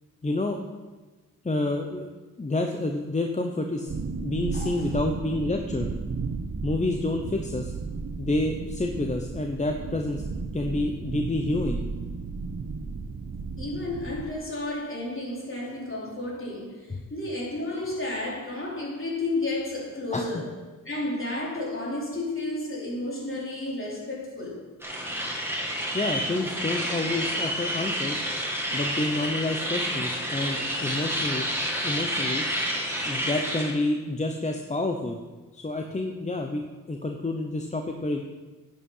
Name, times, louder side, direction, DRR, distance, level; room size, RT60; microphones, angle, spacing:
voice 1, 0.2-0.6 1.4-2.1 2.4-3.9 4.2-5.9 6.6-7.7 8.2-10.2 10.5-11.8 16.9-17.0 20.1-20.4 25.9-28.2 28.7-31.5 31.8-32.4 33.0-35.2 35.5-36.6 36.9-38.2, left 2 dB, 20° left, 3 dB, 0.8 m, -28 dB
sound 1, 3.9-14.3, right 4 dB, 50° right, 1.0 m, -34 dB
voice 2, 4.5-4.9 13.6-20.5 20.8-24.6, left 2 dB, 40° left, -4 dB, 4.0 m, -32 dB
sound 2, 24.8-33.7, equal, 5° right, 2.4 m, -29 dB
10.0 x 8.6 x 5.6 m, 1.2 s
wide cardioid pair, 90°, 32 cm